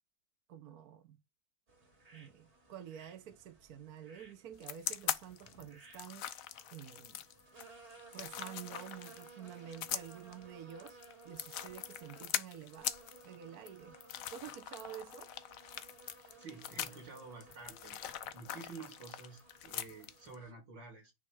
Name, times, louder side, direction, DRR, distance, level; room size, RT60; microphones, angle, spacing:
voice 1, 0.5-1.2 2.1-6.3 6.7-7.2 8.1-11.0 11.2-12.9 13.2-14.0 14.3-15.3, right 9 dB, 60° right, 1.3 m, -49 dB
sound 1, 1.7-20.5, right 3 dB, 35° right, 2.7 m, -58 dB
sound 2, 4.6-20.3, left 10 dB, 65° left, 0.9 m, -42 dB
voice 2, 16.4-18.0 18.3-21.1, right 4 dB, 80° right, 3.8 m, -50 dB
9.6 x 3.3 x 4.8 m
omnidirectional pair, 1.9 m